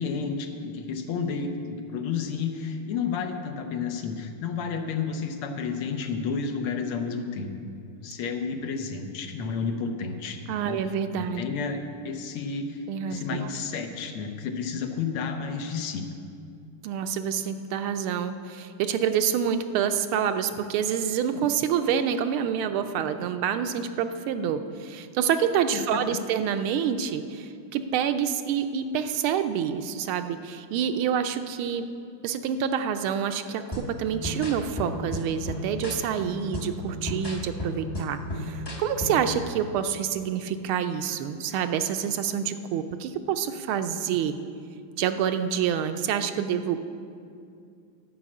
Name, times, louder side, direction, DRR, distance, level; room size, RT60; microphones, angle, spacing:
voice 1, 0.0-7.5 8.0-10.8 11.2-11.8 12.1-16.1 25.7-26.2, left 5 dB, 85° left, 5 dB, 1.8 m, -31 dB
voice 2, 10.5-11.4 12.9-13.5 16.8-31.9 32.2-44.4 45.0-46.8, right 8 dB, 80° right, 8 dB, 1.5 m, -27 dB
sound 1, 33.7-39.4, left 1 dB, 30° left, 0.4 m, -34 dB
12.0 x 6.1 x 8.5 m, 2.4 s
omnidirectional pair, 2.3 m